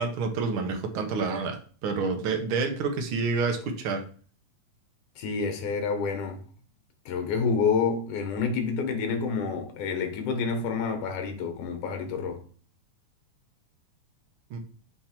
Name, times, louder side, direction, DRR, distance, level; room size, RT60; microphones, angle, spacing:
voice 1, 0.0-4.0 14.5-14.6, right 4 dB, 65° right, 1.4 m, -28 dB
voice 2, 5.2-6.4 7.1-12.4, left 5 dB, 85° left, 2.6 m, -28 dB
7.3 x 3.5 x 4.4 m
omnidirectional pair, 3.5 m